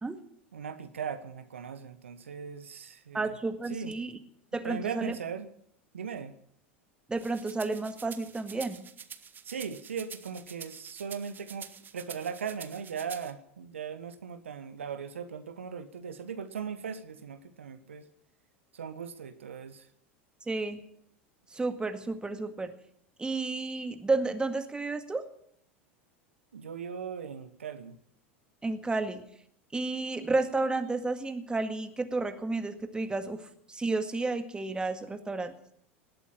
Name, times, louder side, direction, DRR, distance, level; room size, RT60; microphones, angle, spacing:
voice 1, 0.5-3.3 3.7-3.9 4.5-5.5 5.9-6.3 9.4-18.1 18.7-19.9 26.5-28.0, right 6 dB, 80° right, 10 dB, 1.3 m, -39 dB
voice 2, 3.1-4.2 4.5-5.2 7.1-8.9 20.5-20.8 21.5-22.7 23.2-25.3 28.6-29.2 29.7-33.4 33.7-35.5, right 3 dB, 15° right, 8 dB, 1.9 m, -31 dB
sound 1, 7.2-13.3, right 7 dB, 30° right, 1.3 m, -47 dB
19.0 x 8.4 x 8.9 m, 0.66 s
hypercardioid pair, 85°, 7 cm